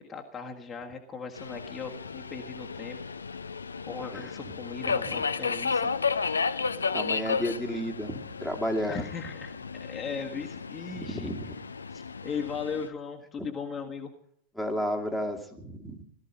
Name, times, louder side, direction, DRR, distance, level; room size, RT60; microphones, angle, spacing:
voice 1, 0.1-3.0 3.9-5.9 8.9-11.3 11.9-14.1, left 5 dB, 20° left, 1 dB, 1.6 m, -38 dB
Subway metro underground, 1.4-12.9, left 5 dB, 75° left, 0.7 m, -33 dB
voice 2, 6.9-9.0 10.9-11.5 13.4-13.5 14.6-16.0, equal, ahead, 1 dB, 2.2 m, -32 dB
18.0 x 13.5 x 5.4 m, 0.71 s
figure-of-eight pair, 90°, 0 cm